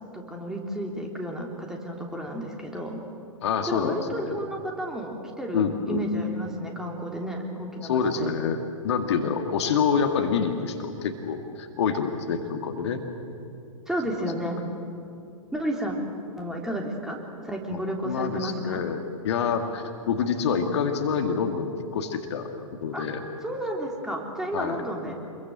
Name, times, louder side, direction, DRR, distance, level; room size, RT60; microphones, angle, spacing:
voice 1, 0.1-3.0 3.7-8.3 13.9-14.6 15.5-15.9 16.4-17.2 17.4-18.8 22.9-23.0 23.4-25.2, equal, 5° right, 0 dB, 3.4 m, -32 dB
voice 2, 3.4-4.4 5.5-6.0 7.8-13.0 17.7-17.8 18.0-22.5 22.8-23.2 24.5-24.8, left 6 dB, 55° left, 5 dB, 2.1 m, -27 dB
27.0 x 22.5 x 7.8 m, 2.6 s
figure-of-eight pair, 105°, 17 cm